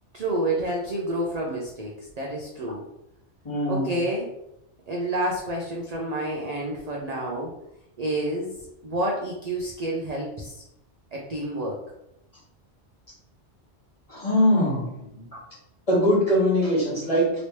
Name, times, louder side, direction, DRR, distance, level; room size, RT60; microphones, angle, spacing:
voice 1, 0.1-2.8 3.7-4.3 4.9-7.5 8.0-8.5 8.8-10.6 11.1-11.8, right 1 dB, 50° right, -2 dB, 0.5 m, -29 dB
voice 2, 3.4-3.9 14.1-15.3 15.9-17.3, equal, 30° left, -7 dB, 1.5 m, -22 dB
3.1 x 2.9 x 3.0 m, 0.83 s
omnidirectional pair, 1.2 m